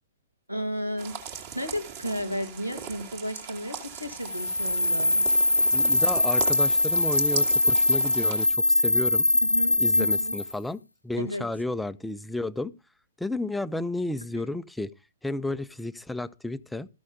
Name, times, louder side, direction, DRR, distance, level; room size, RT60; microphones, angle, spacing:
voice 1, 0.5-5.2 9.4-10.4 11.2-11.4, equal, 90° right, 2.1 m, -33 dB
sound 1, 1.0-8.5, right 8 dB, 40° right, 2.0 m, -39 dB
sound 2, 4.2-10.5, left 1 dB, 90° left, 1.0 m, -22 dB
voice 2, 5.7-9.3 9.8-12.7 13.2-14.9 15.2-16.9, left 2 dB, 5° left, 0.5 m, -32 dB
13.5 x 6.3 x 5.1 m
figure-of-eight pair, 120°, 0 cm